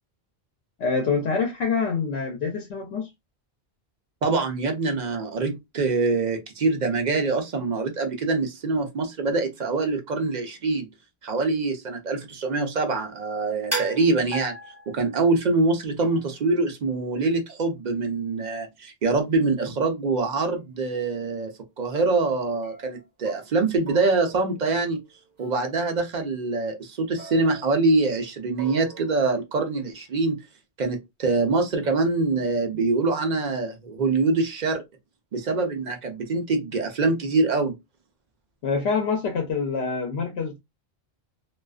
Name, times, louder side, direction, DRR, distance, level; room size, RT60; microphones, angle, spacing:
voice 1, 0.8-3.1 38.6-40.6, left 5 dB, 80° left, 0.8 m, -26 dB
voice 2, 4.2-10.9 11.2-14.5 14.9-21.5 21.8-25.0 25.4-30.4 30.8-34.8 35.3-37.7, right 3 dB, 50° right, 0.6 m, -24 dB
sound 1, 13.7-15.3 16.0-16.4 20.4-20.5 21.0-21.3 22.6-23.6 23.9-24.9 25.4-25.6 27.2-28.2 28.6-29.2, right 3 dB, 15° right, 1.3 m, -37 dB
2.4 x 2.3 x 2.3 m
omnidirectional pair, 1.1 m